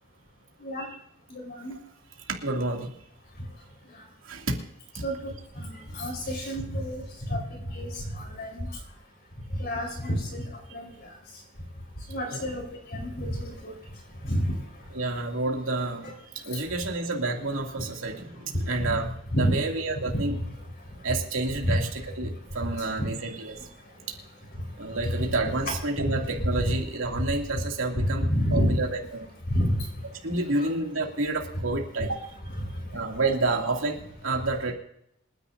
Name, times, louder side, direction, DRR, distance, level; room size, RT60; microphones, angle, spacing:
voice 1, 1.4-1.7 5.0-7.0 7.3-7.4 7.7-8.7 9.6-10.4 10.7-10.9 12.1-12.6 12.9-13.7 14.2-14.5 18.7-18.9 19.3-19.5 20.1-20.4 21.6-21.8 25.0-25.3 26.0-26.1 27.5-27.6 28.0-28.8 29.5-29.8 30.6-30.7 32.6-33.0, equal, 50° left, -1 dB, 4.5 m, -28 dB
voice 2, 2.4-2.9 4.3-4.4 12.3-12.4 14.9-16.1 16.5-20.4 21.0-23.6 24.8-29.3 30.2-32.2 32.9-34.0 34.2-34.7, right 2 dB, 75° right, 1 dB, 2.5 m, -29 dB
27.0 x 10.0 x 2.7 m, 0.75 s
head